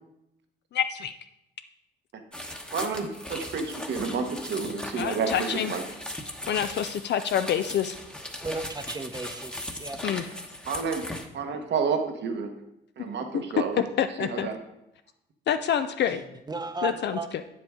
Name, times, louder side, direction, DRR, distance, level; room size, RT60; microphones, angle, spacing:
voice 1, 0.7-1.1 5.0-5.7 6.5-7.9 10.0-10.2 14.0-14.5 15.5-16.2 16.8-17.4, left 9 dB, 60° left, 8 dB, 0.5 m, -27 dB
sound 1, 2.3-11.3, left 1 dB, 5° left, 1.0 m, -38 dB
voice 2, 2.7-5.8 10.0-10.1 10.7-11.0 11.3-12.5 13.0-13.9 14.2-14.6, right 5 dB, 60° right, 5 dB, 1.2 m, -30 dB
voice 3, 8.4-10.0 16.1-17.3, right 3 dB, 20° right, 8 dB, 0.8 m, -35 dB
8.5 x 7.6 x 3.6 m, 0.82 s
cardioid pair, 90°, 20 cm